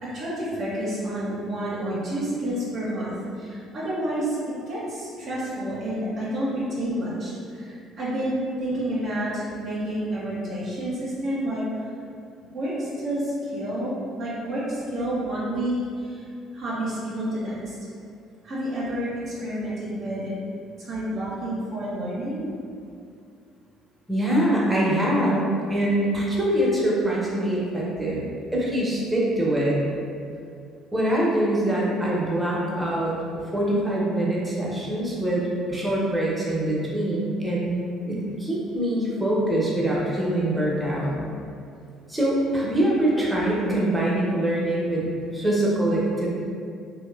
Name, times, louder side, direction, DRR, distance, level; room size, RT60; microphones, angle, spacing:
voice 1, 0.1-4.4 4.7-11.9 12.4-16.2 16.5-17.8 18.4-20.3 20.8-22.5, right 1 dB, 55° right, -8 dB, 0.6 m, -29 dB
voice 2, 24.1-29.8 30.9-33.1 33.5-37.7 38.1-41.1 42.1-46.3, right 1 dB, 10° right, -5 dB, 0.7 m, -24 dB
2.9 x 2.0 x 2.3 m, 2.4 s
hypercardioid pair, 55°, 0 cm